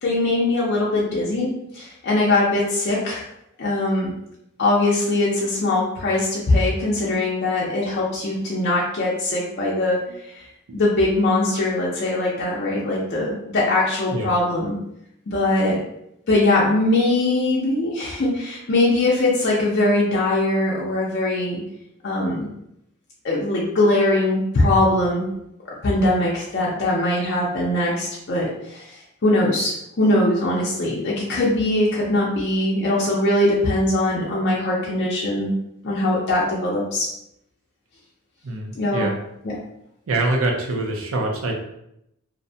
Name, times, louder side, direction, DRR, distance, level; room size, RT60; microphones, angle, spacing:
voice 1, 0.0-3.2 3.6-4.1 4.6-10.0 10.3-10.4 10.7-14.8 15.3-15.8 16.3-21.6 22.0-22.5 23.2-25.3 25.8-28.9 29.2-35.5 35.8-37.1 38.8-39.1 39.4-39.6, left 2 dB, 50° left, -5 dB, 0.5 m, -21 dB
voice 2, 38.4-39.2 40.1-41.5, right 2 dB, 75° right, 1 dB, 0.5 m, -24 dB
2.5 x 2.1 x 2.6 m, 0.79 s
head